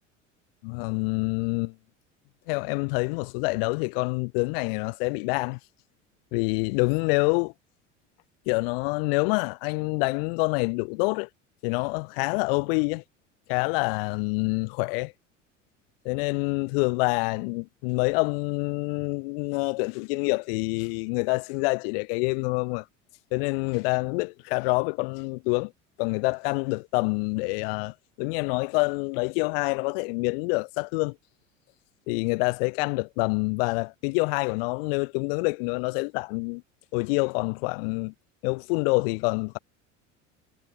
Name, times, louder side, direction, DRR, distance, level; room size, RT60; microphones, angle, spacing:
voice 1, 0.6-1.7 2.5-5.6 6.3-7.5 8.5-11.3 11.6-13.0 13.5-15.1 16.0-22.8 23.3-25.7 26.0-31.1 32.1-36.6 36.9-38.1 38.4-39.6, left 32 dB, 50° left, 0.6 m, -27 dB
figure-of-eight pair, 70°, 38 cm